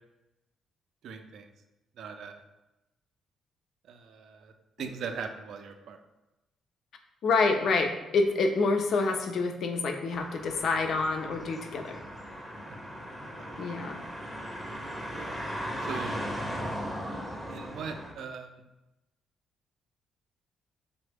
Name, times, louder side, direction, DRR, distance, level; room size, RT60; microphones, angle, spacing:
voice 1, 1.0-1.5 2.0-2.4 3.9-4.5 4.8-6.0 15.1-15.4 15.8-16.2 17.5-18.6, right 6 dB, 70° right, 6 dB, 0.3 m, -40 dB
voice 2, 7.2-12.0 13.6-14.0, left 3 dB, 65° left, 5 dB, 0.4 m, -27 dB
sound 1, 10.1-18.1, equal, ahead, 0.5 m, -38 dB
3.2 x 2.0 x 3.3 m, 0.99 s
cardioid pair, 90°, 0 cm